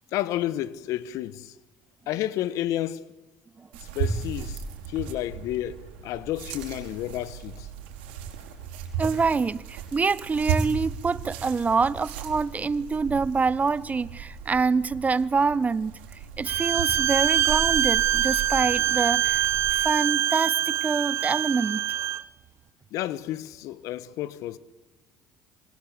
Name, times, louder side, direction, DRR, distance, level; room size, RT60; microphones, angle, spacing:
voice 1, 0.1-1.5 2.1-3.0 3.9-4.6 4.9-7.7 22.9-24.6, left 13 dB, 70° left, 1.4 m, -31 dB
sound 1, 3.7-19.7, right 6 dB, 90° right, 5.0 m, -35 dB
voice 2, 9.0-16.0 16.4-21.8, right 4 dB, 25° right, 0.9 m, -26 dB
Bowed string instrument, 16.5-22.2, right 11 dB, 55° right, 1.1 m, -24 dB
27.0 x 25.5 x 8.5 m
supercardioid pair, 80°, 6 cm